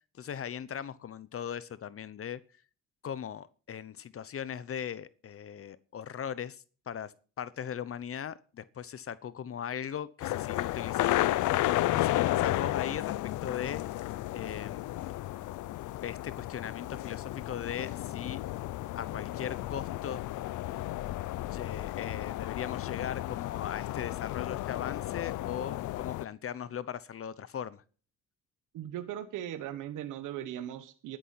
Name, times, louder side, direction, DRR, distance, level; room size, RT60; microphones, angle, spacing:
voice 1, 0.1-2.4 3.0-11.3 11.9-13.8 14.3-14.9 16.0-18.4 19.0-20.2 21.4-27.8, left 8 dB, 50° left, 18 dB, 0.9 m, -39 dB
sound 1, 10.2-26.3, left 16 dB, 80° left, 0.6 m, -33 dB
voice 2, 28.7-31.2, right 11 dB, 85° right, 10 dB, 1.3 m, -38 dB
11.5 x 10.5 x 5.8 m, 0.39 s
cardioid pair, 90°, 30 cm